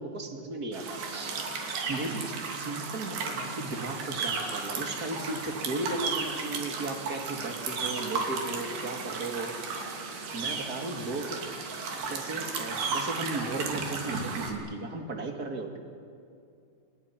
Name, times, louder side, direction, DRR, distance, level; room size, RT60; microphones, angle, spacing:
voice 1, 0.0-1.3 1.6-9.6 10.3-11.4 12.1-15.8, right 2 dB, 30° right, 3 dB, 2.3 m, -36 dB
sound 1, 0.7-14.5, right 4 dB, 75° right, 4.7 m, -34 dB
29.5 x 27.5 x 6.1 m, 2.5 s
omnidirectional pair, 4.4 m